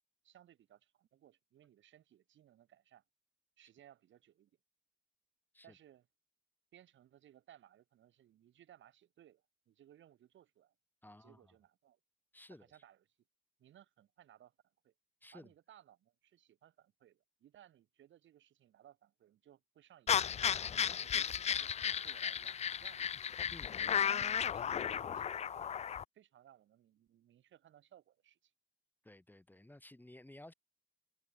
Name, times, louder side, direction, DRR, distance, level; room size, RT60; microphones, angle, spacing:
voice 1, 0.2-3.0 3.6-4.5 5.6-6.1 6.7-10.7 11.1-12.0 12.5-13.0 13.6-14.5 14.8-14.9 15.3-20.1 20.9-23.4 23.8-25.7 26.1-28.5, right 11 dB, 70° right, 6.3 m, -63 dB
voice 2, 11.0-11.5 12.3-12.7 15.2-15.5 20.5-21.0 23.5-23.8 29.0-30.5, left 1 dB, 10° left, 4.1 m, -56 dB
sound 1, 20.1-26.0, left 8 dB, 35° left, 0.4 m, -34 dB
cardioid pair, 90°, 20 cm